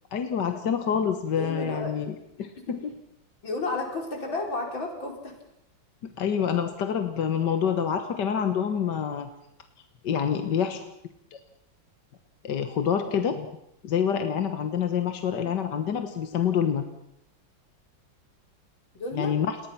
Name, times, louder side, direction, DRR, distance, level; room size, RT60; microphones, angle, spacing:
voice 1, 0.1-2.9 6.0-9.3 10.0-10.8 11.3-11.4 12.4-13.5 13.8-16.8 19.1-19.6, left 8 dB, 65° left, 7 dB, 1.9 m, -27 dB
voice 2, 1.3-1.9 3.4-5.4 15.3-15.6 18.9-19.3, left 3 dB, 85° left, 2 dB, 5.5 m, -32 dB
29.5 x 20.0 x 5.9 m, 0.77 s
omnidirectional pair, 2.1 m